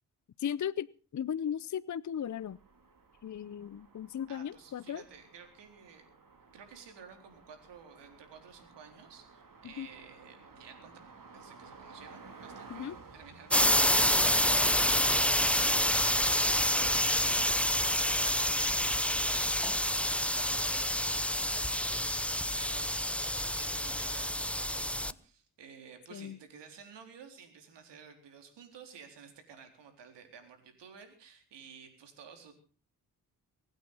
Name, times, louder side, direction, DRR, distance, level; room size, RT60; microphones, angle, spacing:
voice 1, 0.4-0.9 1.1-2.6 3.2-5.0 9.6-9.9 12.7-13.0 26.1-26.4, left 9 dB, 45° left, 17 dB, 0.7 m, -36 dB
sound 1, 2.2-18.0, right 4 dB, 50° right, 3.1 m, -52 dB
voice 2, 4.3-6.1 6.5-10.9 11.3-32.5, right 6 dB, 90° right, 5 dB, 4.1 m, -53 dB
sound 2, 13.5-25.1, left 1 dB, 5° left, 0.8 m, -28 dB
24.0 x 9.1 x 5.6 m, 0.39 s
supercardioid pair, 45°, 41 cm